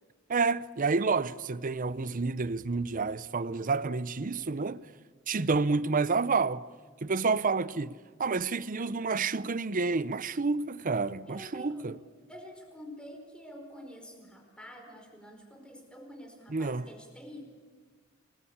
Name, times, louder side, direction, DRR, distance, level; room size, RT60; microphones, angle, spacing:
voice 1, 0.3-4.8 5.3-6.6 7.0-7.9 8.2-12.0 16.5-16.8, right 4 dB, 40° right, 0.6 m, -29 dB
voice 2, 11.3-12.0 12.3-17.4, equal, 5° left, 4.7 m, -47 dB
26.5 x 20.5 x 8.7 m
head